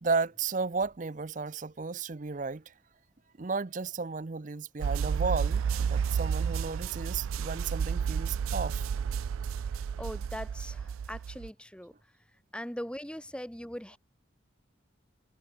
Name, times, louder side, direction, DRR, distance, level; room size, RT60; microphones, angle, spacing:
voice 1, 0.0-2.7 3.4-8.9, right 4 dB, 40° right, 0.6 m, -33 dB
sound 1, 4.8-11.5, right 7 dB, 90° right, 0.3 m, -31 dB
voice 2, 10.0-11.9 12.5-14.0, equal, 5° left, 2.0 m, -40 dB
head